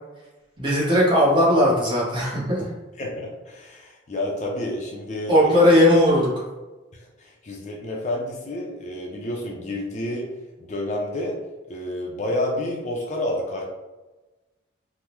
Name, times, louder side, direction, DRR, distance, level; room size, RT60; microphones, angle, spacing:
voice 1, 0.6-2.7 5.3-6.3, equal, 25° right, -6 dB, 0.9 m, -18 dB
voice 2, 3.0-5.8 6.9-10.3 10.6-11.4 11.7-13.6, left 1 dB, 35° left, -1 dB, 0.4 m, -30 dB
3.5 x 2.0 x 2.9 m, 1.1 s
head